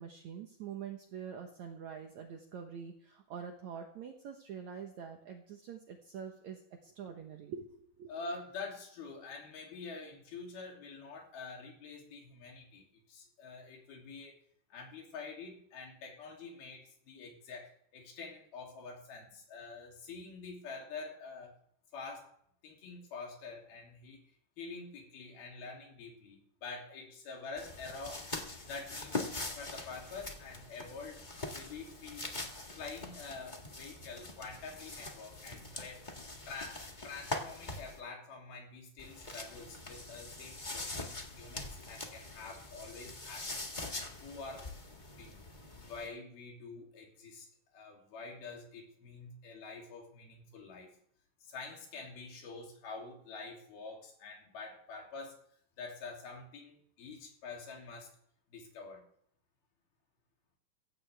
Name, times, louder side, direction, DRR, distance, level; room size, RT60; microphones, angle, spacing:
voice 1, 0.0-8.1, right 7 dB, 60° right, 3 dB, 2.2 m, -45 dB
voice 2, 8.1-14.4 14.7-21.6 21.9-22.3 22.6-24.2 24.6-28.3 28.6-31.2 31.5-32.3 32.7-36.0 36.5-43.7 44.2-44.7 45.2-45.4 45.9-47.5 47.7-50.9 51.4-55.4 55.8-58.1 58.5-59.0, left 4 dB, 90° left, 0 dB, 4.8 m, -47 dB
sound 1, 27.6-38.0 39.0-46.1, left 2 dB, 60° left, 0.4 m, -43 dB
16.5 x 15.5 x 3.5 m, 0.66 s
omnidirectional pair, 4.2 m